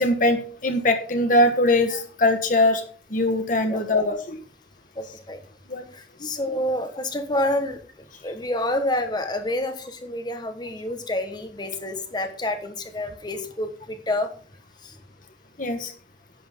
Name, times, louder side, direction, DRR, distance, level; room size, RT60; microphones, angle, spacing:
voice 1, 0.0-2.8 3.1-4.4 5.7-5.9 6.2-6.3 15.6-15.9, left 1 dB, 45° left, 5 dB, 1.4 m, -21 dB
voice 2, 5.0-5.4 5.9-14.3 14.8-14.9, left 1 dB, 20° left, 7 dB, 1.3 m, -28 dB
10.5 x 9.0 x 3.7 m, 0.43 s
head